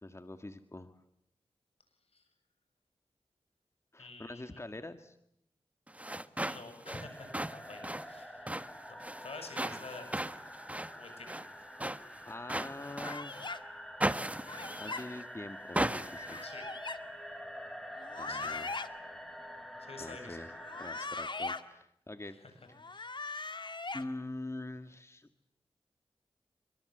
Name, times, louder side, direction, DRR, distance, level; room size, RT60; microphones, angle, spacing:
voice 1, 0.0-1.0 3.9-5.2 12.2-13.4 14.8-16.4 18.2-19.0 20.0-20.5 20.8-22.4 22.7-23.6 23.9-25.3, left 2 dB, 25° left, 8 dB, 1.8 m, -45 dB
voice 2, 4.0-4.6 6.4-10.3 11.0-11.3 16.4-16.7 18.3-18.5 19.8-20.4 22.2-22.5, left 3 dB, 75° left, 7 dB, 7.9 m, -49 dB
sound 1, 5.9-13.5 14.0-15.3 15.7-16.5, right 1 dB, 15° right, 1.5 m, -37 dB
sound 2, 7.0-21.1, equal, 5° left, 7.3 m, -47 dB
sound 3, 13.0-13.6 14.5-15.0 16.1-17.0 18.0-18.9 20.6-21.6 22.7-24.0, left 3 dB, 50° left, 2.0 m, -40 dB
29.0 x 25.0 x 8.0 m, 0.74 s
cardioid pair, 50°, 10 cm